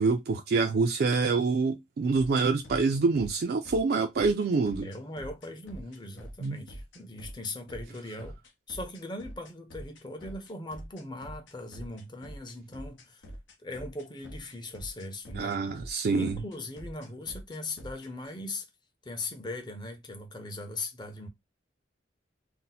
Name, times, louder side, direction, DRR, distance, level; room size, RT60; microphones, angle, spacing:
voice 1, 0.0-4.9 6.4-6.6 15.3-16.3, right 4 dB, 55° right, 0.3 m, -26 dB
sound 1, 2.1-18.1, equal, 80° left, 0.7 m, -44 dB
voice 2, 4.8-8.4 8.7-13.2 13.6-15.6 16.1-18.7 19.0-21.3, left 2 dB, 25° left, 0.6 m, -39 dB
2.6 x 2.1 x 4.0 m
head